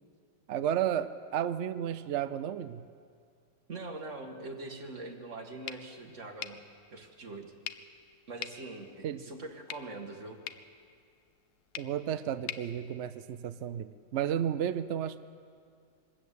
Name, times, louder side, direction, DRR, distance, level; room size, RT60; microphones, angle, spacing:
voice 1, 0.5-2.9 9.0-9.2 11.8-15.2, right 10 dB, 75° right, 12 dB, 0.6 m, -32 dB
voice 2, 3.7-6.6 6.9-7.5 8.3-10.4, right 2 dB, 45° right, 3 dB, 2.2 m, -43 dB
sound 1, 5.6-13.7, left 10 dB, 70° left, 1.2 m, -47 dB
23.5 x 13.5 x 8.5 m, 2.2 s
omnidirectional pair, 1.9 m